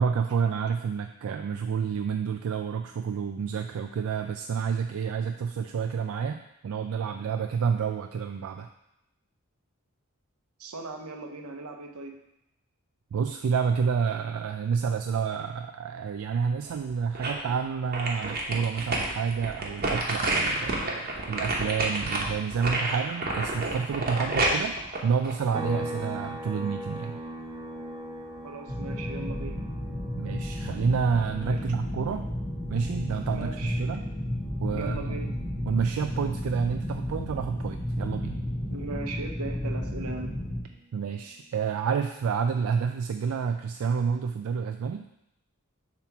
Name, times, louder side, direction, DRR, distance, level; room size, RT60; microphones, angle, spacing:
voice 1, 0.0-8.7 13.1-27.2 30.2-32.2 32.7-34.0 34.6-35.0 35.7-38.4 40.9-45.0, right 6 dB, 70° right, 6 dB, 0.3 m, -29 dB
voice 2, 10.6-12.2 28.4-29.6 31.5-31.6 33.3-33.9 34.7-35.3 38.7-40.4, right 3 dB, 85° right, 4 dB, 0.8 m, -38 dB
sound 1, 16.7-17.5 17.9-26.0 26.4-26.5, right 2 dB, 40° right, 1.0 m, -29 dB
sound 2, 25.5-39.1 39.4-41.6, equal, 20° right, 0.7 m, -42 dB
sound 3, 28.7-40.6, left 1 dB, 30° left, 2.3 m, -32 dB
7.1 x 2.9 x 5.8 m, 0.83 s
head